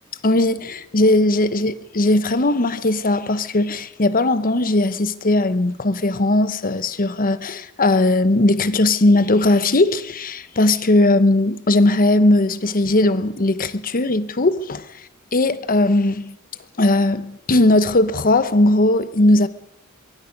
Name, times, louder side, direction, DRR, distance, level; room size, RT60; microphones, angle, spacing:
voice 1, 0.2-14.9 15.3-16.4 16.8-19.5, left 2 dB, 40° left, 1.0 m, -18 dB
23.5 x 23.0 x 5.3 m
head